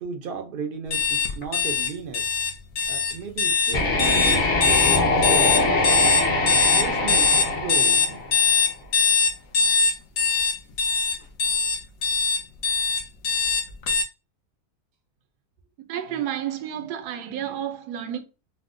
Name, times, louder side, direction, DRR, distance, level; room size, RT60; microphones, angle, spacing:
voice 1, 0.0-2.2 2.9-8.3 16.1-16.2, right 6 dB, 70° right, 0.5 m, -35 dB
sound 1, 0.9-14.0, left 5 dB, 70° left, 1.0 m, -21 dB
sound 2, 3.7-8.6, left 2 dB, 45° left, 0.7 m, -23 dB
voice 2, 15.9-18.2, right 10 dB, 85° right, 1.1 m, -30 dB
4.2 x 2.0 x 2.5 m
omnidirectional pair, 1.6 m